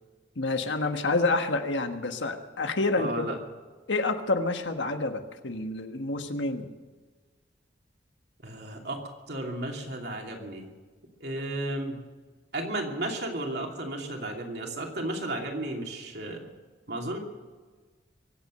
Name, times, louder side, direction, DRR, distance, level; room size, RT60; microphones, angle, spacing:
voice 1, 0.3-3.3 3.9-6.7, left 3 dB, 85° left, 6 dB, 1.5 m, -28 dB
voice 2, 3.0-3.4 8.4-10.7 11.2-12.0 12.5-16.5 16.9-17.2, right 1 dB, 60° right, 1 dB, 2.8 m, -33 dB
23.5 x 8.7 x 6.4 m, 1.4 s
head